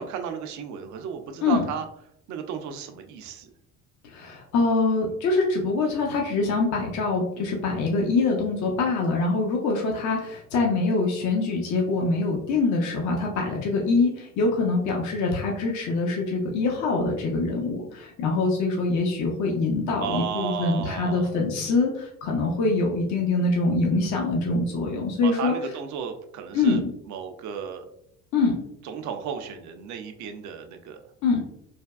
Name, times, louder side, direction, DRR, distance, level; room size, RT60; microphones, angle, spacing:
voice 1, 0.0-1.9 2.3-3.5 20.0-21.3 25.2-27.8 28.8-31.0, right 7 dB, 40° right, 6 dB, 0.5 m, -34 dB
voice 2, 4.0-25.6 26.5-26.9 28.3-28.6 31.2-31.4, left 3 dB, 40° left, 0 dB, 0.7 m, -24 dB
3.3 x 2.2 x 2.3 m, 0.74 s
hypercardioid pair, 65°, 45 cm